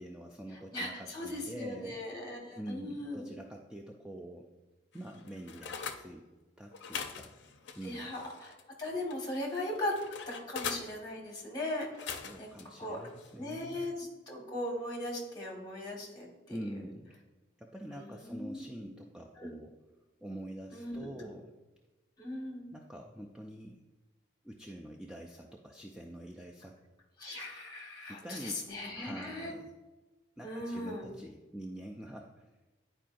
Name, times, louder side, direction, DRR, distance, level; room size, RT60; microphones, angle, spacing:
voice 1, 0.0-2.0 2.6-4.5 4.9-6.3 6.6-7.3 7.8-8.1 12.0-13.9 16.5-17.1 17.6-19.7 20.2-21.5 22.7-23.8 24.4-26.8 28.1-28.7 28.9-29.7 30.4-32.5, right 1 dB, 5° right, 0 dB, 0.3 m, -46 dB
voice 2, 0.7-3.3 7.8-10.0 10.3-12.5 12.8-13.0 13.4-16.6 17.9-18.9 19.4-19.5 20.7-21.2 22.2-22.7 27.2-29.5 30.4-31.1, left 1 dB, 20° left, -1 dB, 1.5 m, -39 dB
sound 1, 4.9-6.0 6.7-8.7 9.1-10.9 11.8-12.6 13.1-13.4, left 6 dB, 65° left, 0.5 m, -42 dB
10.0 x 4.5 x 2.5 m, 1.2 s
head